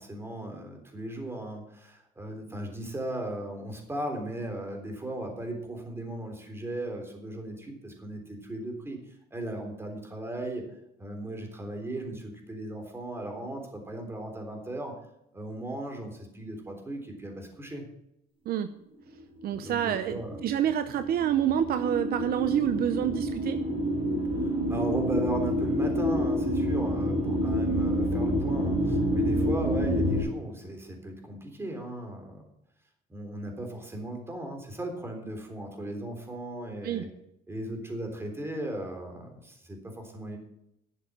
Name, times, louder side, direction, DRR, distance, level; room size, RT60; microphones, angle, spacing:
voice 1, 0.0-9.0 9.3-10.7 11.0-14.9 15.3-17.8 19.5-20.4 24.4-32.4 33.1-37.1 37.5-40.4, right 1 dB, 15° right, 3 dB, 3.6 m, -37 dB
sound 1, 19.2-30.2, equal, 30° right, 4.6 m, -28 dB
voice 2, 19.4-23.6 36.8-37.0, right 10 dB, 65° right, 10 dB, 0.8 m, -28 dB
11.5 x 7.4 x 7.5 m, 0.81 s
cardioid pair, 110°, 17 cm